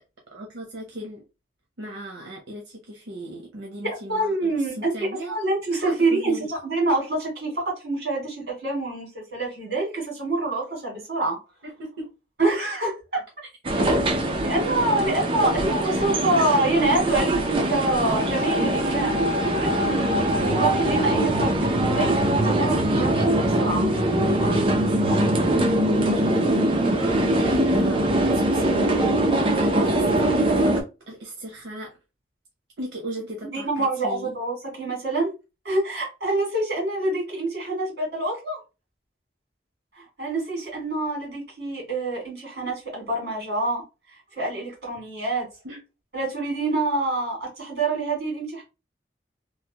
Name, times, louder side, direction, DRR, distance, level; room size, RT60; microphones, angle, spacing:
voice 1, 0.3-1.2 1.8-5.4 5.8-6.5 11.6-12.1 15.4-16.3 26.9-29.0 29.6-31.9 32.8-34.3 45.6-45.8, right 1 dB, 90° right, 0.7 m, -37 dB
voice 2, 4.1-4.9 5.3-11.4 12.4-13.2 14.4-19.2 19.6-23.9 33.5-35.3 35.7-38.6 40.0-43.8 44.4-45.5 46.1-48.6, right 2 dB, 65° right, 1.8 m, -26 dB
sound 1, 13.6-30.8, right 1 dB, 30° right, 0.5 m, -22 dB
3.0 x 2.1 x 2.7 m
head